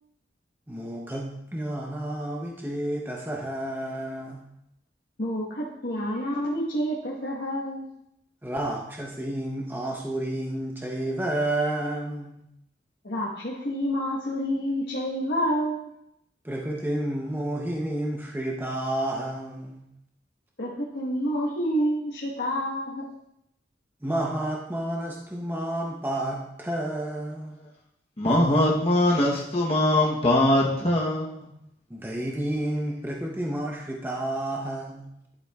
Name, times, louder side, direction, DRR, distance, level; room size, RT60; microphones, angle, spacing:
voice 1, 0.7-4.4 8.4-12.4 16.4-19.8 24.0-27.6 31.9-35.1, right 1 dB, 10° right, -1 dB, 0.7 m, -30 dB
voice 2, 5.2-7.9 13.0-15.9 20.6-23.1, equal, 75° left, -6 dB, 1.3 m, -28 dB
voice 3, 28.2-31.5, left 1 dB, 35° left, -4 dB, 0.9 m, -22 dB
11.5 x 6.9 x 2.4 m, 0.82 s
head